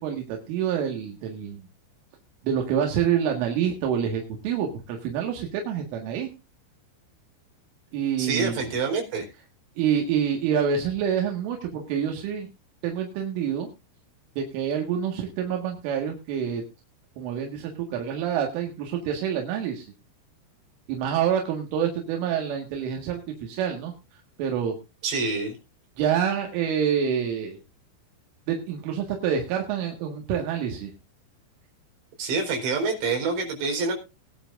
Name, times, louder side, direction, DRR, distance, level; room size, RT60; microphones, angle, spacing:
voice 1, 0.0-1.7 2.4-6.3 7.9-8.6 9.8-12.5 12.8-13.7 14.4-16.6 17.2-19.9 20.9-23.9 24.4-24.8 26.0-27.6 28.5-30.9, right 8 dB, 85° right, 2 dB, 4.3 m, -27 dB
voice 2, 8.2-9.3 25.0-25.6 32.2-33.9, right 4 dB, 65° right, 1 dB, 6.6 m, -26 dB
21.0 x 10.0 x 2.5 m, 0.28 s
omnidirectional pair, 5.5 m